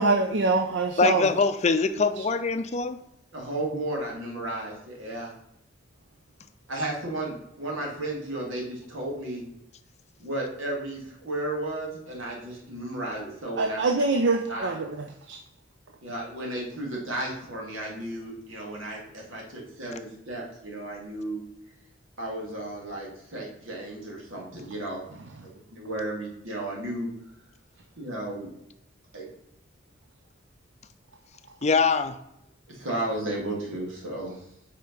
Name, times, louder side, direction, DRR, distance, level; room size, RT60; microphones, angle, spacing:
voice 1, 0.0-1.2 13.6-14.9 15.3-15.4, right 3 dB, 65° right, 5 dB, 0.6 m, -24 dB
voice 2, 1.0-3.0 31.6-32.2, left 4 dB, 35° left, 10 dB, 0.4 m, -23 dB
voice 3, 3.3-5.3 6.7-9.4 10.2-13.8 14.5-14.8 16.0-21.4 22.2-25.0 25.7-27.1 28.0-28.5 29.1-29.3 32.7-34.4, right 1 dB, 85° right, -1 dB, 2.2 m, -33 dB
5.5 x 5.0 x 5.2 m, 0.82 s
head